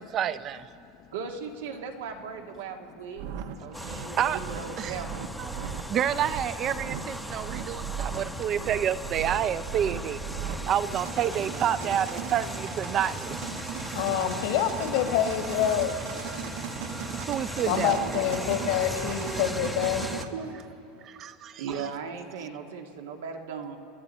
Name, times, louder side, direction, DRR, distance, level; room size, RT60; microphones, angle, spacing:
voice 1, 0.0-0.6 3.9-4.4 4.8-5.0 5.4-5.5 5.9-10.2 10.7-13.4 17.2-18.0 21.2-21.8, right 9 dB, 35° right, 15 dB, 0.5 m, -29 dB
voice 2, 1.1-3.2 3.6-5.3 11.3-12.0 17.6-18.2 20.3-20.6 21.6-23.8, right 6 dB, 90° right, 3 dB, 1.6 m, -38 dB
voice 3, 3.2-4.1 5.5-6.0 7.2-8.6 10.3-10.7, left 11 dB, 40° left, 12 dB, 0.6 m, -53 dB
sound 1, 3.2-20.3, right 7 dB, 70° right, 1.0 m, -38 dB
sound 2, 3.7-20.2, equal, ahead, 0.7 m, -38 dB
voice 4, 13.9-16.0 17.7-20.1, left 9 dB, 75° left, 5 dB, 1.6 m, -26 dB
28.0 x 11.0 x 4.3 m, 2.6 s
supercardioid pair, 140°, 0 cm